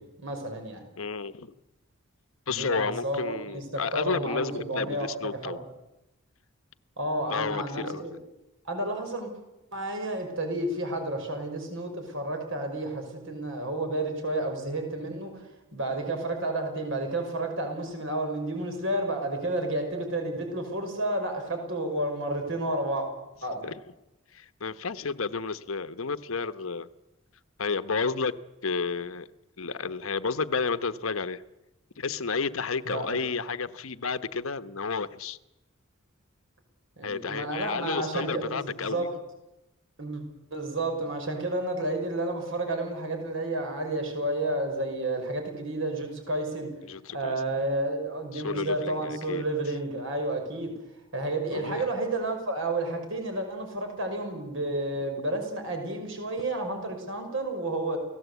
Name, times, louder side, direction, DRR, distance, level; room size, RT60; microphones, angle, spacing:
voice 1, 0.2-0.9 2.5-5.6 7.0-8.1 8.6-9.3 9.7-15.4 15.7-23.1 23.4-23.6 32.9-33.2 37.0-39.1 40.0-40.2 40.5-46.7 47.1-50.7 51.1-58.0, right 1 dB, 65° right, 4 dB, 5.6 m, -31 dB
voice 2, 1.0-1.5 2.5-5.6 7.3-8.0 23.6-23.8 24.3-26.9 27.6-28.3 28.6-29.3 29.6-31.4 32.0-35.4 37.0-39.1 46.9-47.4 48.3-49.4 51.5-51.9, left 4 dB, 75° left, 12 dB, 1.0 m, -31 dB
29.0 x 17.5 x 8.2 m, 0.97 s
head